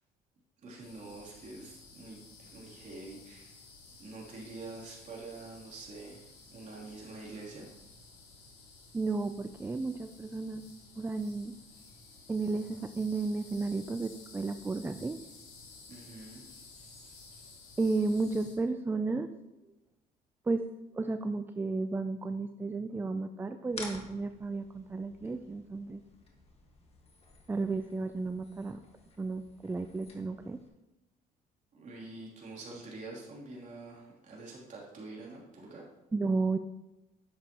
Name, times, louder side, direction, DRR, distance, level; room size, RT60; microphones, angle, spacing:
voice 1, 0.6-3.6 4.0-7.7 15.9-16.4 31.7-35.8, right 3 dB, 45° right, -4 dB, 3.2 m, -46 dB
sound 1, 0.8-18.5, left 3 dB, 80° left, 2.9 m, -54 dB
voice 2, 8.9-10.7 11.0-11.5 12.3-15.2 17.8-19.3 20.5-20.7 21.0-26.0 27.5-28.8 29.2-30.6 36.1-36.6, right 3 dB, 10° right, 9 dB, 0.3 m, -33 dB
sound 2, 23.7-30.7, left 3 dB, 35° left, 1.7 m, -51 dB
10.5 x 7.3 x 3.0 m, 0.98 s
cardioid pair, 110°, 17 cm